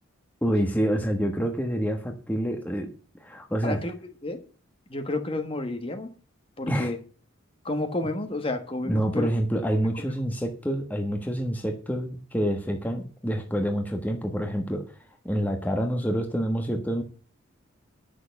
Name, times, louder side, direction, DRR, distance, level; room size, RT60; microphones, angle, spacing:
voice 1, 0.4-2.9 3.2-3.8 6.7-6.9 8.8-14.8 15.2-17.0, equal, 10° left, 3 dB, 1.3 m, -27 dB
voice 2, 3.6-3.9 4.2-4.4 4.9-6.1 6.6-7.0 7.6-9.3 10.0-10.1, left 2 dB, 25° left, 6 dB, 1.3 m, -30 dB
10.5 x 6.5 x 7.0 m, 0.37 s
head